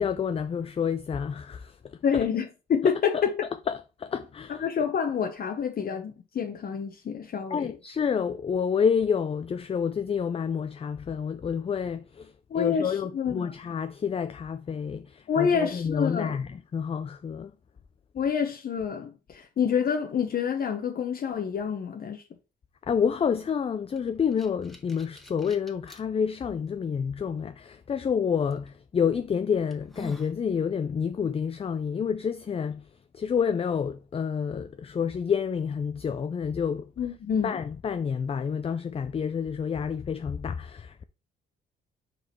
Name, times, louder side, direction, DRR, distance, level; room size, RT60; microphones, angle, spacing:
voice 1, 0.0-2.2 3.1-4.6 7.5-17.5 22.9-32.9 33.1-36.9 37.4-41.0, left 7 dB, 30° left, 0.4 m, -29 dB
voice 2, 2.0-3.3 4.5-7.7 12.5-13.5 15.3-16.4 18.1-22.2 37.0-37.6, left 7 dB, 50° left, 0.9 m, -28 dB
sound 1, 24.0-26.0 26.7-26.8 28.5-28.7 29.2-29.3 29.7-30.4, left 1 dB, ahead, 1.4 m, -46 dB
5.1 x 4.7 x 4.5 m
cardioid pair, 90°, 20 cm